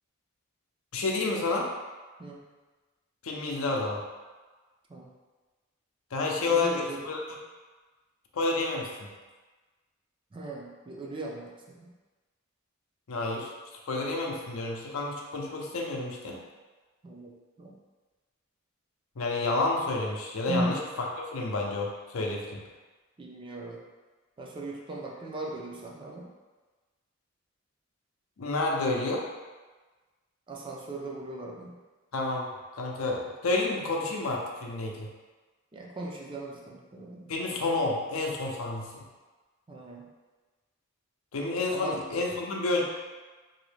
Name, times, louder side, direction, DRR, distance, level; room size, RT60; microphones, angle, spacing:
voice 1, 0.9-1.7 3.2-4.0 6.1-7.2 8.3-9.1 13.1-13.5 13.9-16.4 19.2-20.8 21.3-22.6 28.4-29.2 32.1-32.4 32.8-35.1 37.3-39.0 41.3-42.8, left 3 dB, 80° left, -1 dB, 0.6 m, -29 dB
voice 2, 6.5-7.1 10.3-11.9 17.0-17.7 20.5-20.8 23.2-23.8 24.4-26.3 30.5-31.8 35.7-37.3 39.7-40.1 41.7-42.0, right 2 dB, 25° right, -1 dB, 0.4 m, -38 dB
3.0 x 2.6 x 3.2 m, 1.3 s
head